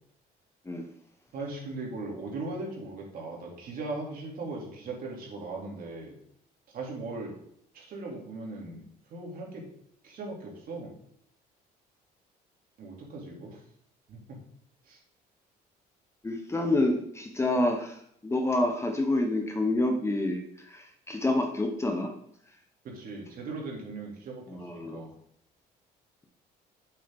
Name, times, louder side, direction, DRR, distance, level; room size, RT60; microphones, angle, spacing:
voice 1, 1.3-6.2 6.7-7.3 7.7-9.7 10.0-10.9 12.8-13.6 14.1-14.4 14.8-15.0 22.8-25.1, right 3 dB, 60° right, -2 dB, 2.9 m, -39 dB
voice 2, 16.2-18.0 18.2-22.1 24.5-25.0, left 2 dB, 15° left, 4 dB, 1.1 m, -28 dB
7.9 x 7.5 x 3.7 m, 0.68 s
cardioid pair, 110°, 17 cm